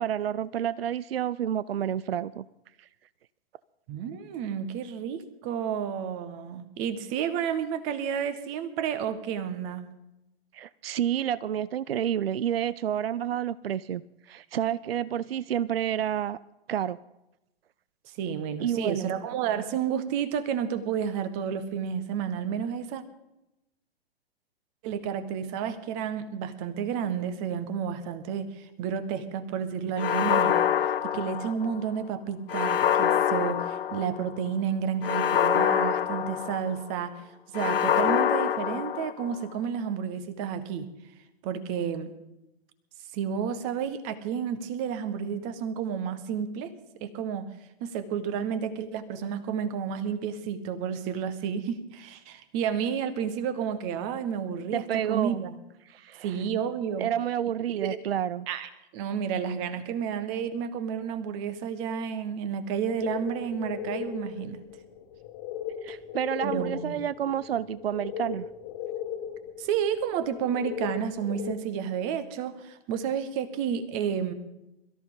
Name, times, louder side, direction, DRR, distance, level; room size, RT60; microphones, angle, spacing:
voice 1, 0.0-2.5 2.8-2.9 10.5-16.4 16.7-17.0 18.6-19.1 54.7-55.5 55.9-56.4 57.0-58.5 65.8-68.5, right 10 dB, 70° right, 0.5 m, -29 dB
voice 2, 3.9-9.9 18.2-23.0 24.8-30.7 31.0-37.1 37.5-40.9 41.4-42.1 43.1-46.7 47.0-47.5 47.8-55.5 56.2-57.1 57.8-58.0 58.5-64.6 66.4-67.0 69.6-74.3, right 7 dB, 35° right, 1.5 m, -31 dB
sound 1, 30.0-31.8 32.5-34.3 35.0-36.9 37.5-39.4, left 9 dB, 65° left, 0.8 m, -25 dB
sound 2, 63.0-71.6, left 9 dB, 35° left, 1.6 m, -37 dB
23.0 x 13.5 x 3.9 m
figure-of-eight pair, 110°, 31 cm